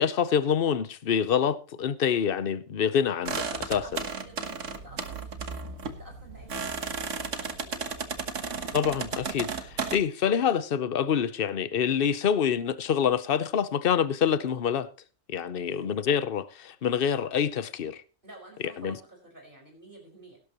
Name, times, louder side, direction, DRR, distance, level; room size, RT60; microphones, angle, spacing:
voice 1, 0.0-3.8 8.7-14.9 15.3-18.0 18.8-19.0, left 8 dB, 50° left, 1.0 m, -26 dB
sound 1, 3.3-10.0, right 5 dB, 75° right, 1.7 m, -34 dB
voice 2, 3.8-8.1 15.6-15.9 18.2-20.4, right 2 dB, 45° right, 5.4 m, -50 dB
17.5 x 12.0 x 3.0 m
omnidirectional pair, 1.3 m